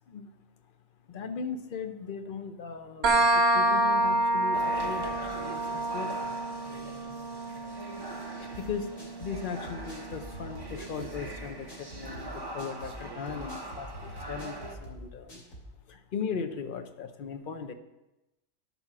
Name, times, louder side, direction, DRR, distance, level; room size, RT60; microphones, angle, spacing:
voice 1, 1.1-6.2 8.0-15.4 15.9-17.7, left 6 dB, 45° left, 8 dB, 0.8 m, -38 dB
sound 1, 3.0-10.5, right 1 dB, 50° right, 1.2 m, -28 dB
sound 2, 4.5-14.8, right 2 dB, 20° right, 0.9 m, -43 dB
sound 3, 8.5-15.7, equal, 70° left, 3.2 m, -45 dB
12.0 x 5.5 x 6.0 m, 0.97 s
omnidirectional pair, 1.4 m